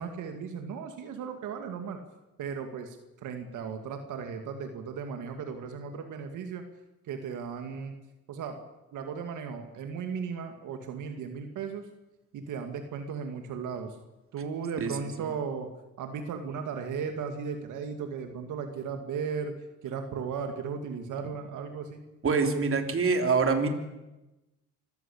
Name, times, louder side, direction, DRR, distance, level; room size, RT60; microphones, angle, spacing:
voice 1, 0.0-2.0 2.4-6.6 7.0-8.0 8.3-8.6 8.9-11.9 12.3-14.0 14.3-15.7 16.0-19.6 19.8-22.0, right 6 dB, 80° right, 6 dB, 2.3 m, -36 dB
voice 2, 22.2-23.7, right 4 dB, 45° right, 5 dB, 3.4 m, -25 dB
25.5 x 14.5 x 8.6 m, 1.0 s
cardioid pair, 90°, 30 cm